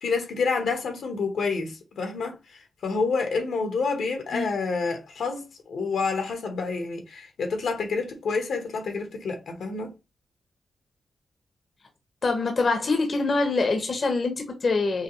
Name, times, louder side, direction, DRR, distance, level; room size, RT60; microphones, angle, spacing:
voice 1, 0.0-2.4 2.8-9.9, left 4 dB, 85° left, 1.4 m, -28 dB
voice 2, 12.2-15.0, left 3 dB, 50° left, 1.0 m, -24 dB
5.5 x 2.5 x 3.1 m
cardioid pair, 95°, 0 cm